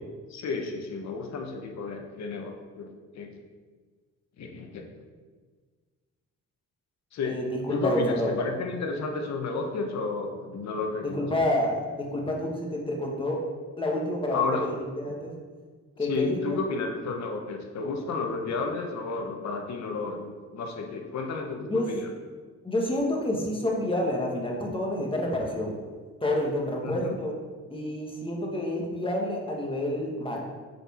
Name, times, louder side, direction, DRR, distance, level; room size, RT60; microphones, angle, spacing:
voice 1, 0.3-2.9 3.1-3.3 4.4-4.8 7.1-7.4 7.7-11.2 14.3-14.7 16.0-22.1 26.8-27.2, left 4 dB, 65° left, 3 dB, 1.2 m, -32 dB
voice 2, 7.2-8.3 11.0-13.4 13.8-15.3 16.0-16.6 21.7-21.9 22.6-25.8 26.2-27.4 27.7-30.4, left 1 dB, 15° left, -1 dB, 1.6 m, -28 dB
6.7 x 4.5 x 4.4 m, 1.5 s
cardioid pair, 90°, 30 cm